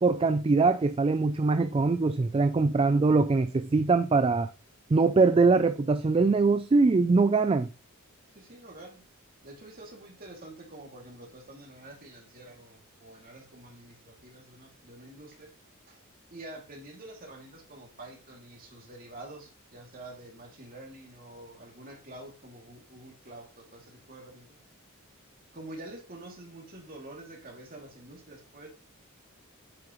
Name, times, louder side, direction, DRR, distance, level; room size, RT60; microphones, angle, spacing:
voice 1, 0.0-4.5 4.9-7.7, right 3 dB, 25° right, 0.3 m, -23 dB
voice 2, 2.5-2.9 8.3-9.0 9.4-15.5 15.9-16.0 16.3-24.6 25.5-28.7, right 1 dB, 40° right, 2.6 m, -47 dB
8.6 x 6.1 x 3.0 m
head